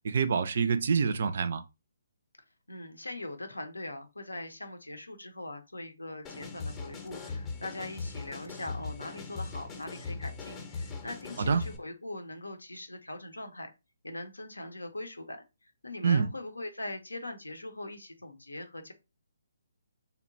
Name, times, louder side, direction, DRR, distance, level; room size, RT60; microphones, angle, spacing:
voice 1, 0.0-1.6 11.4-11.6 16.0-16.3, right 6 dB, 55° right, 0.3 m, -26 dB
voice 2, 2.7-13.7 14.0-15.4 15.8-18.9, left 2 dB, 90° left, 0.6 m, -41 dB
sound 1, 6.2-11.8, left 4 dB, 20° left, 0.6 m, -39 dB
2.8 x 2.1 x 2.6 m
figure-of-eight pair, 140°, 0 cm